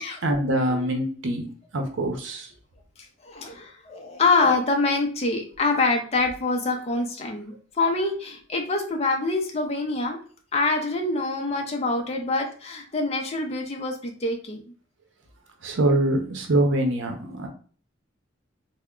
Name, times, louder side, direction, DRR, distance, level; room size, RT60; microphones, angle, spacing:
voice 1, 0.2-1.4 1.7-2.5 15.6-17.5, right 1 dB, 70° right, 4 dB, 0.7 m, -24 dB
voice 2, 3.2-10.2 10.5-14.6, left 3 dB, 30° left, 3 dB, 0.5 m, -25 dB
3.4 x 2.1 x 3.6 m, 0.42 s
head